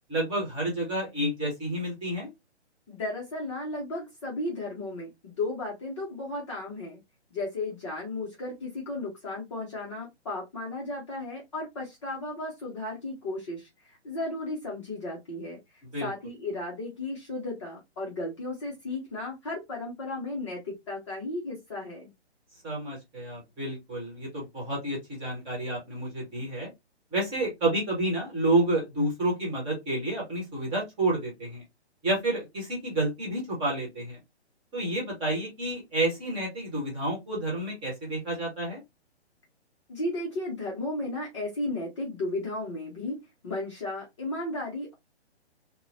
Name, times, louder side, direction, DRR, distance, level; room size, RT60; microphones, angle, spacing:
voice 1, 0.1-2.3 15.9-16.1 22.6-26.7 27.1-31.6 32.0-34.2 34.7-38.8, right 1 dB, 15° right, -2 dB, 1.0 m, -29 dB
voice 2, 2.9-7.0 7.3-22.1 39.9-44.9, left 2 dB, 25° left, -3 dB, 0.6 m, -34 dB
2.9 x 2.0 x 2.5 m, 0.20 s
hypercardioid pair, 150°, 34 cm